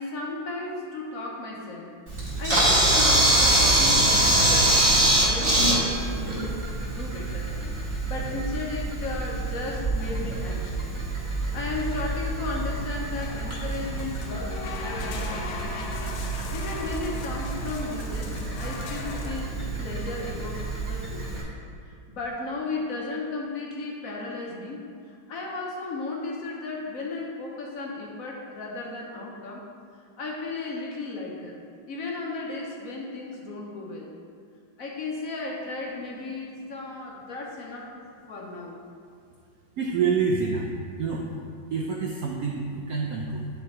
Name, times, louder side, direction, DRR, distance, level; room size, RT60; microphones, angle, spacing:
voice 1, 0.0-7.5 7.8-10.9 11.5-15.8 16.3-21.5 21.9-29.7 30.2-31.6 31.9-34.1 34.8-38.8, left 3 dB, 55° left, -1 dB, 1.1 m, -35 dB
Camera, 2.1-21.4, right 1 dB, 15° right, 1.7 m, -25 dB
sound 1, 13.1-19.4, left 4 dB, 80° left, 1.4 m, -39 dB
voice 2, 39.8-40.7 41.0-41.2 41.7-43.5, right 5 dB, 70° right, -1 dB, 0.8 m, -27 dB
10.0 x 3.4 x 4.3 m, 2.3 s
omnidirectional pair, 2.1 m